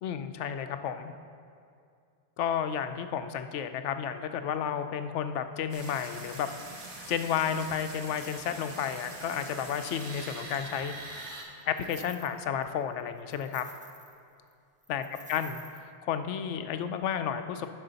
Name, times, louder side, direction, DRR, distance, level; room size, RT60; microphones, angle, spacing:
voice 1, 0.0-1.1 2.4-6.5 7.1-10.9 11.7-13.6 14.9-15.0 15.3-15.6 16.0-17.7, left 8 dB, 75° left, 9 dB, 0.9 m, -32 dB
sound 1, 5.7-11.4, right 2 dB, 85° right, 1.6 m, -44 dB
sound 2, 10.5-10.9 11.4-12.6 13.0-14.2 14.5-14.6 14.8-15.8, right 1 dB, 10° right, 0.3 m, -51 dB
11.5 x 6.3 x 4.0 m, 2.4 s
omnidirectional pair, 1.2 m